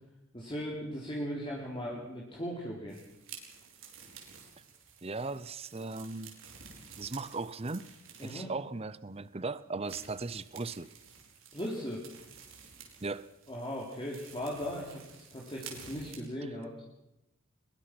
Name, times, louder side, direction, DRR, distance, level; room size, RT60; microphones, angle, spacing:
voice 1, 0.3-3.0 8.2-8.5 11.5-12.0 13.5-16.7, equal, 20° left, -3 dB, 3.5 m, -38 dB
sound 1, 2.9-8.6 9.1-9.2 9.8-16.2, right 6 dB, 60° right, 4.8 m, -52 dB
voice 2, 5.0-6.3 7.0-7.9 8.2-10.9 13.0-13.3, right 3 dB, 25° right, 16 dB, 0.7 m, -37 dB
22.5 x 21.5 x 6.0 m, 0.89 s
head